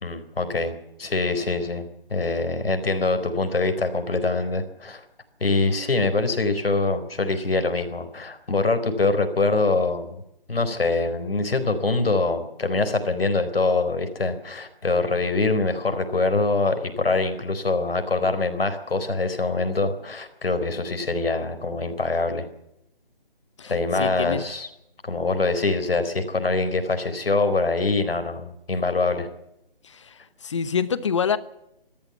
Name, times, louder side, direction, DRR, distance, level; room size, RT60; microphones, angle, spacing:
voice 1, 0.0-5.0 5.4-10.2 10.5-22.5 23.7-24.7 25.0-29.3, left 3 dB, 80° left, 9 dB, 4.3 m, -24 dB
voice 2, 23.6-24.4 29.8-31.4, left 6 dB, 30° left, 15 dB, 1.1 m, -27 dB
22.5 x 14.0 x 8.2 m, 0.83 s
hypercardioid pair, 165°, 29 cm